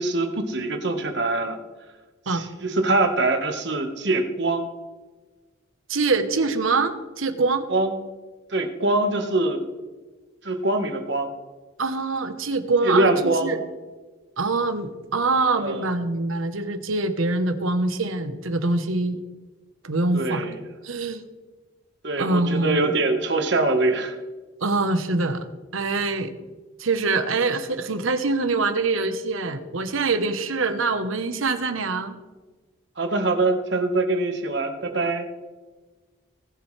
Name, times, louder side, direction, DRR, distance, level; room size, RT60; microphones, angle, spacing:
voice 1, 0.0-1.6 2.3-4.7 7.7-8.0 8.5-9.6 10.4-11.3 12.8-13.6 15.5-15.9 20.1-20.6 22.0-24.2 33.0-35.3, right 2 dB, 60° right, 5 dB, 1.4 m, -23 dB
voice 2, 5.9-7.7 11.8-13.6 14.4-19.2 19.8-20.5 20.8-21.2 22.2-22.9 24.6-25.4 25.7-26.3 26.8-32.2, right 3 dB, 85° right, 9 dB, 1.1 m, -24 dB
20.0 x 7.4 x 3.3 m, 1.3 s
head